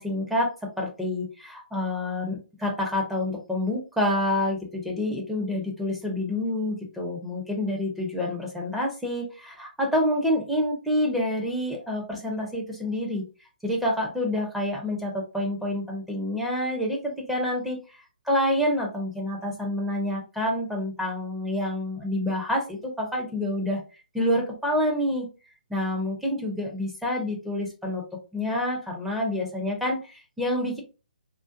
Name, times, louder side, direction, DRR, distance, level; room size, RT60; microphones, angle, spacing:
voice 1, 0.0-13.2 13.6-18.0 18.3-23.8 24.1-25.3 25.7-28.0 28.3-30.8, left 1 dB, 5° right, -1 dB, 0.5 m, -28 dB
2.5 x 2.1 x 2.5 m, 0.32 s
hypercardioid pair, 145°, 5 cm